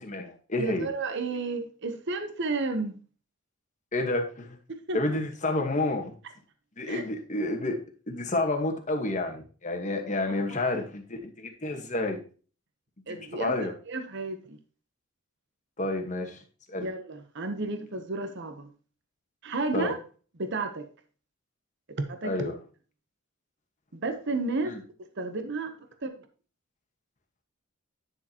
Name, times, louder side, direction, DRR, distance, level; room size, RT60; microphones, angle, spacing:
voice 1, 0.0-0.9 3.9-4.6 4.9-6.1 6.8-7.8 8.1-12.2 13.1-13.7 15.8-16.9 19.7-19.9 22.2-22.5 24.6-24.8, left 2 dB, 35° left, 3 dB, 1.3 m, -30 dB
voice 2, 0.6-3.0 4.7-5.2 6.9-7.0 13.1-14.6 16.8-18.7 19.4-20.0 20.4-20.9 22.1-22.3 23.9-24.8 25.2-26.1, right 3 dB, 55° right, 8 dB, 0.8 m, -32 dB
9.8 x 6.4 x 2.9 m, 0.38 s
head